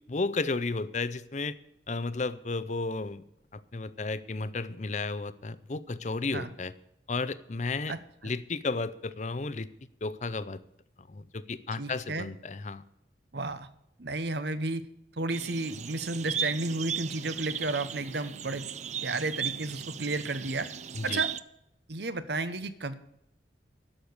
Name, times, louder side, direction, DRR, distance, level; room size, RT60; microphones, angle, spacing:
voice 1, 0.1-1.6 1.9-3.2 3.5-6.7 7.1-7.9 8.2-9.7 10.0-10.6 11.0-12.8 20.9-21.2, left 3 dB, 40° left, 15 dB, 0.6 m, -33 dB
voice 2, 7.9-8.3 11.8-12.3 13.3-13.7 14.0-14.8 15.2-18.6 19.0-20.7 21.0-21.3 21.9-22.9, right 2 dB, 65° right, 13 dB, 1.0 m, -32 dB
sound 1, 15.3-21.4, right 8 dB, 40° right, 0.5 m, -36 dB
11.5 x 6.7 x 9.6 m, 0.78 s
head